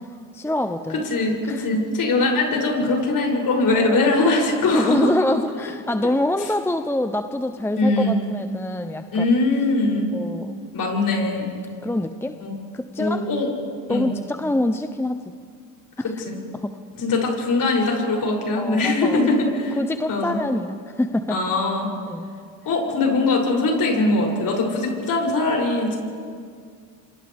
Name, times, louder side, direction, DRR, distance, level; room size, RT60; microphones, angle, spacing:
voice 1, 0.3-1.0 1.4-1.7 3.7-4.1 4.6-9.3 10.1-10.5 11.8-12.4 12.7-13.3 13.9-15.2 16.0-16.2 16.5-16.8 18.6-19.3 19.8-21.4 22.1-22.3, left 1 dB, 5° left, 8 dB, 0.7 m, -25 dB
voice 2, 1.1-5.0 5.3-5.4 7.8-8.1 9.1-10.1 10.7-11.5 12.4-12.5 13.0-13.5 13.9-14.1 16.2-16.4 17.0-19.5 20.1-20.4 21.3-21.9 22.6-25.9, left 2 dB, 50° left, -1 dB, 7.8 m, -21 dB
28.0 x 25.5 x 3.6 m, 2.1 s
supercardioid pair, 85°, 44 cm